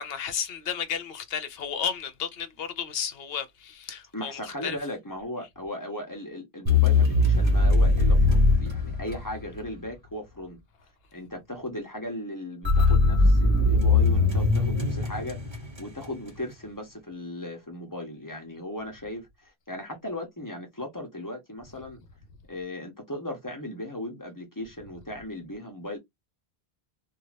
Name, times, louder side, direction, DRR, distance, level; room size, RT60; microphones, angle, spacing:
voice 1, 0.0-4.8, left 7 dB, 65° left, 0.8 m, -33 dB
voice 2, 4.1-10.6 11.1-15.4 15.8-22.0 22.5-26.0, left 1 dB, 20° left, 0.9 m, -37 dB
sound 1, 6.7-9.6 12.6-16.1, left 3 dB, 25° right, 0.9 m, -21 dB
2.7 x 2.2 x 3.2 m
omnidirectional pair, 1.1 m